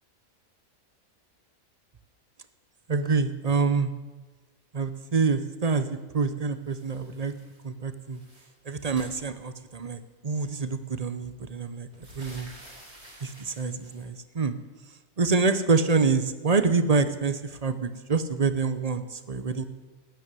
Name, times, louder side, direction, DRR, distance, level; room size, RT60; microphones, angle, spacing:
voice 1, 2.9-3.9 4.7-7.3 7.6-8.2 8.6-11.9 12.1-12.5 13.2-14.6 15.2-19.6, right 4 dB, 35° right, 12 dB, 0.8 m, -26 dB
sound 1, 6.6-7.6 7.9-9.9 10.8-10.9 11.3-14.0, right 1 dB, 50° right, 4.2 m, -50 dB
13.0 x 9.8 x 9.2 m, 1.2 s
omnidirectional pair, 1.4 m